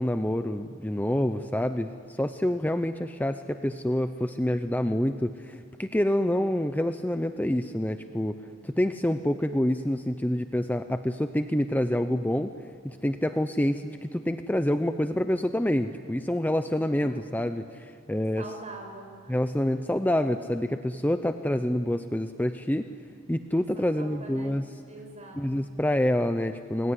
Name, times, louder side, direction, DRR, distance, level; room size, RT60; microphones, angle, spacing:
voice 1, 0.0-8.4 8.6-12.5 12.8-18.5 19.3-22.9 23.3-24.6 25.3-26.9, left 1 dB, 10° left, 8 dB, 0.7 m, -27 dB
voice 2, 16.7-17.2 18.4-19.4 23.6-24.6 24.9-25.7, right 2 dB, 35° right, 2 dB, 5.7 m, -44 dB
28.0 x 22.0 x 9.7 m, 2.2 s
head